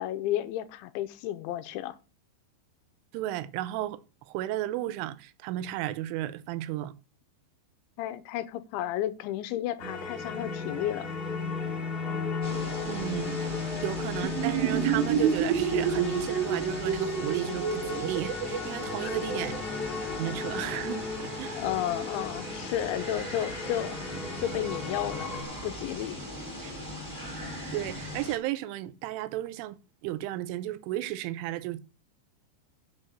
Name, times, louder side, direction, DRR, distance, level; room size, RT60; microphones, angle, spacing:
voice 1, 0.0-1.9 8.0-11.1 19.0-19.2 21.6-24.0 24.4-25.3 25.6-26.3, left 12 dB, 85° left, 3.1 m, -32 dB
voice 2, 3.1-6.9 12.8-13.5 13.8-19.6 20.2-21.6 26.6-26.7 27.7-29.8 30.0-31.8, right 14 dB, 85° right, 3.3 m, -34 dB
sound 1, 9.8-25.4, left 4 dB, 15° left, 2.0 m, -35 dB
sound 2, 12.4-28.4, equal, 10° right, 6.6 m, -39 dB
sound 3, 14.2-19.6, right 9 dB, 70° right, 3.0 m, -29 dB
9.2 x 6.3 x 6.5 m
omnidirectional pair, 5.5 m